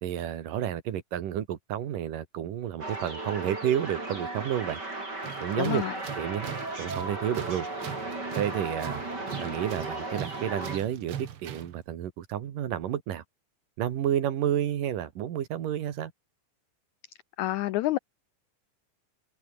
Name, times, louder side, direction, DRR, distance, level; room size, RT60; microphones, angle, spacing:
voice 1, 0.0-4.8 5.4-5.8 6.2-6.5 6.8-7.7 8.3-9.0 9.4-11.1 11.4-13.2 13.8-16.1, right 10 dB, 70° right, 3.3 m, -30 dB
sound 1, 2.8-10.8, right 2 dB, 25° right, 7.1 m, -36 dB
Tools, 5.2-11.8, right 9 dB, 55° right, 1.7 m, -40 dB
voice 2, 5.5-6.0 17.4-18.0, left 16 dB, 85° left, 1.7 m, -28 dB
omnidirectional pair, 4.1 m